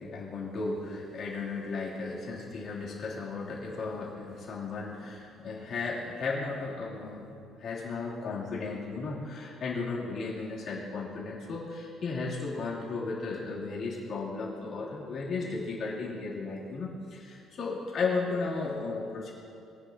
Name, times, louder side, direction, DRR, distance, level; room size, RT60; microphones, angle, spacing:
voice 1, 0.0-19.3, left 4 dB, 40° left, -6 dB, 2.9 m, -35 dB
23.0 x 9.6 x 2.8 m, 2.6 s
cardioid pair, 165°, 0 cm